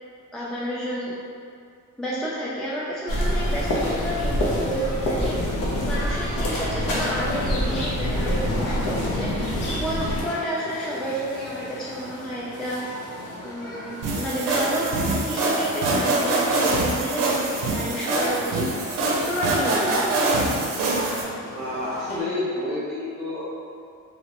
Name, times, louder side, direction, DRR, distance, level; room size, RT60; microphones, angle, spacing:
voice 1, 0.3-1.1 2.0-5.4 5.9-9.3 9.8-12.8 13.4-18.7 19.3-20.1, equal, ahead, -7 dB, 0.3 m, -30 dB
sound 1, 3.1-10.2, equal, 85° left, 0.6 m, -25 dB
sound 2, 3.1-22.2, left 1 dB, 50° left, 0.7 m, -39 dB
sound 3, 14.0-21.2, right 2 dB, 85° right, 0.5 m, -24 dB
voice 2, 21.5-23.5, left 2 dB, 30° right, -11 dB, 0.7 m, -29 dB
2.8 x 2.1 x 2.9 m, 2.3 s
cardioid pair, 100°, 31 cm